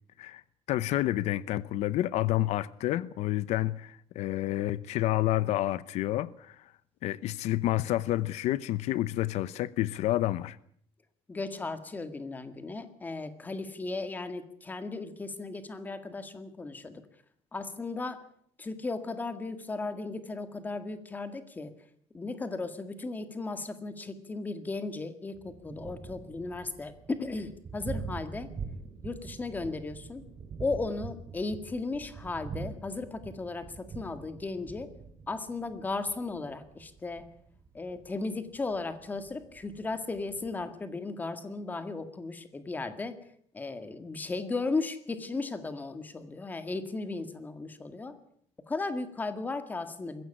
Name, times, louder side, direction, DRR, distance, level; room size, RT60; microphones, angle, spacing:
voice 1, 0.7-6.6 7.0-10.6, left 15 dB, 80° left, 0.8 m, -29 dB
voice 2, 11.3-17.0 17.5-18.2 18.6-21.7 22.1-28.5 29.0-30.2 30.6-34.9 35.3-37.3 37.7-43.2 43.5-48.2 48.7-50.2, left 3 dB, 15° left, 1.9 m, -36 dB
Thunder, 25.3-40.6, right 4 dB, 30° right, 2.8 m, -44 dB
22.0 x 16.0 x 9.9 m
cardioid pair, 180°, 11 cm